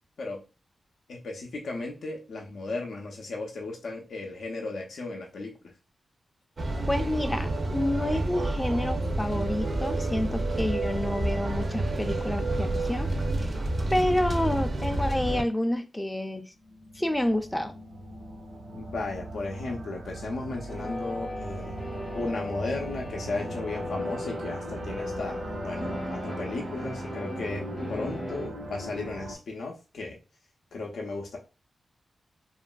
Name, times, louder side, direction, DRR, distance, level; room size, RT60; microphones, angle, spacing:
voice 1, 1.1-5.7 18.7-21.8 22.1-30.2 30.7-31.4, left 3 dB, 85° left, 0.5 m, -35 dB
sound 1, 6.6-15.4, right 1 dB, 50° right, 0.5 m, -29 dB
voice 2, 6.9-13.1 13.4-13.5 13.9-16.5 17.0-17.8, left 1 dB, 10° left, 0.4 m, -29 dB
sound 2, 16.6-29.4, right 1 dB, 80° right, 1.0 m, -39 dB
sound 3, 20.7-28.5, left 1 dB, 35° left, 0.8 m, -37 dB
2.9 x 2.4 x 2.2 m
wide cardioid pair, 85°, 0 cm